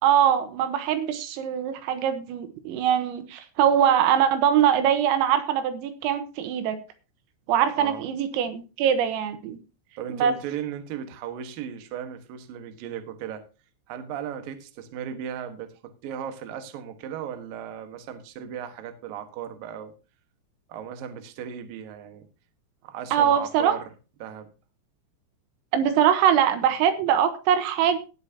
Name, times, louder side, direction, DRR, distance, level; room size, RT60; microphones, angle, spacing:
voice 1, 0.0-6.8 7.5-9.6 10.1-10.3 23.1-23.8 25.7-28.0, right 9 dB, 85° right, 9 dB, 3.8 m, -22 dB
voice 2, 10.0-13.4 13.9-19.9 20.7-22.3 22.8-23.9 24.2-24.5, right 9 dB, 65° right, 7 dB, 2.4 m, -36 dB
18.5 x 8.8 x 2.9 m, 0.33 s
omnidirectional pair, 6.0 m